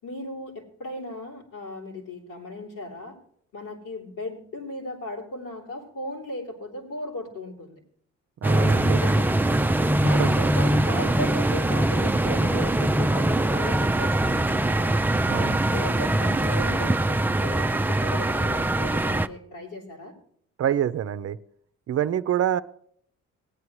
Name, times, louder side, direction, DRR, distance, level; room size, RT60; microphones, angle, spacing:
voice 1, 0.0-3.1 3.5-7.8 8.9-9.7 10.0-14.9 15.6-20.1, left 2 dB, 85° left, -2 dB, 3.8 m, -37 dB
sound 1, 8.4-19.3, right 1 dB, 5° right, 0.4 m, -22 dB
voice 2, 8.4-9.0 10.0-10.3 15.3-15.6 20.6-21.4 21.9-22.6, right 10 dB, 55° right, 13 dB, 0.6 m, -26 dB
18.5 x 9.6 x 3.1 m, 0.66 s
cardioid pair, 90°, 30 cm